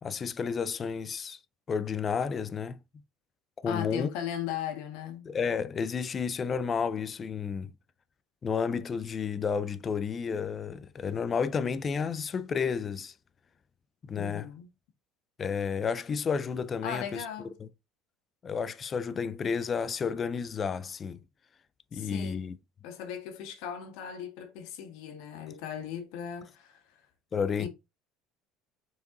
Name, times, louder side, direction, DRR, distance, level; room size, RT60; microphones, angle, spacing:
voice 1, 0.0-1.4 1.7-2.8 3.6-4.1 5.3-7.7 8.4-13.1 14.1-14.5 15.4-17.2 17.6-17.7 18.4-21.2 21.9-22.6 27.3-27.7, left 6 dB, 25° left, 0.4 m, -31 dB
voice 2, 3.7-5.3 14.1-14.7 16.8-17.5 21.9-22.5 22.8-27.0 27.6-27.7, left 9 dB, 75° left, 1.6 m, -38 dB
5.4 x 4.6 x 3.8 m
cardioid pair, 160°, 0 cm